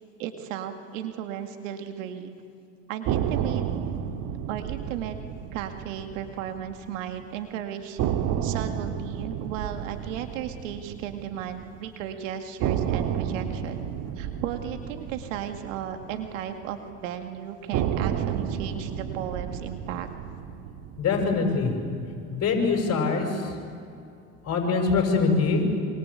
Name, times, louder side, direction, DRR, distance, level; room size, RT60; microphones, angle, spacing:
voice 1, 0.2-2.3 2.9-3.7 4.5-5.2 5.5-8.0 8.4-13.8 14.2-20.1, right 10 dB, 85° right, 7 dB, 2.3 m, -35 dB
sound 1, 3.1-7.1 7.4-7.5 8.0-12.1 12.6-17.0 17.7-22.1, right 9 dB, 65° right, 2.1 m, -31 dB
voice 2, 21.0-21.8 22.3-23.5 24.4-25.7, left 4 dB, 40° left, 3 dB, 6.4 m, -23 dB
26.0 x 25.0 x 8.5 m, 2.5 s
supercardioid pair, 85°, 38 cm